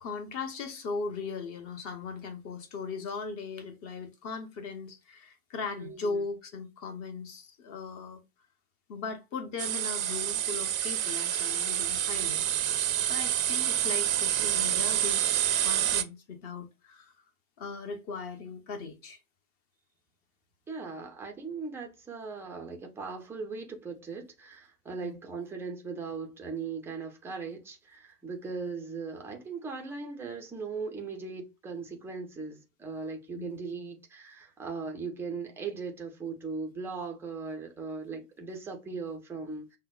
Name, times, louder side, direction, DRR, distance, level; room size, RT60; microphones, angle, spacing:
voice 1, 0.0-8.2 8.9-12.4 13.0-17.1 17.6-19.2 25.0-25.2 33.3-33.5, left 4 dB, 30° left, 0.9 m, -38 dB
voice 2, 5.8-6.2 20.7-39.7, right 4 dB, 5° right, 0.4 m, -39 dB
sound 1, 9.6-16.0, right 11 dB, 65° right, 0.6 m, -28 dB
5.6 x 2.1 x 2.3 m
figure-of-eight pair, 90°, 44 cm